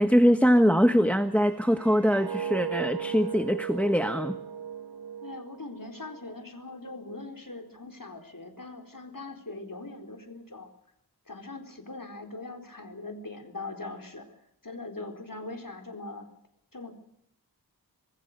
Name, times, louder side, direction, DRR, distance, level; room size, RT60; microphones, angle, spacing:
voice 1, 0.0-4.4, equal, 5° left, 9 dB, 1.3 m, -22 dB
sound 1, 1.3-6.3 6.7-7.0, right 7 dB, 80° right, 1.4 m, -37 dB
voice 2, 5.2-10.7 11.3-16.3 16.7-16.9, left 2 dB, 55° left, 5 dB, 4.3 m, -41 dB
26.0 x 20.5 x 6.8 m, 0.75 s
wide cardioid pair, 55°, 39 cm